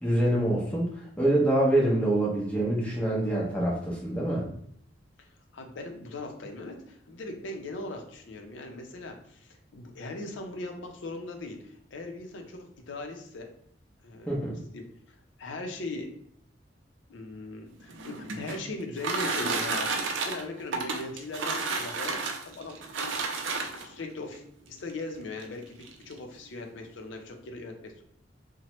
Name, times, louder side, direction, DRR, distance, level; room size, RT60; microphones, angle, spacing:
voice 1, 0.0-4.5 14.3-14.6, right 1 dB, 5° left, -4 dB, 0.7 m, -25 dB
voice 2, 5.5-13.5 14.0-14.3 14.7-14.8 15.4-16.1 17.1-23.2 23.6-24.4 24.7-28.0, left 2 dB, 80° left, 3 dB, 0.5 m, -39 dB
sound 1, 17.8-24.0 24.9-25.0 25.4-25.5 25.8-26.2, right 4 dB, 90° right, 0.4 m, -31 dB
2.9 x 2.1 x 2.9 m, 0.68 s
head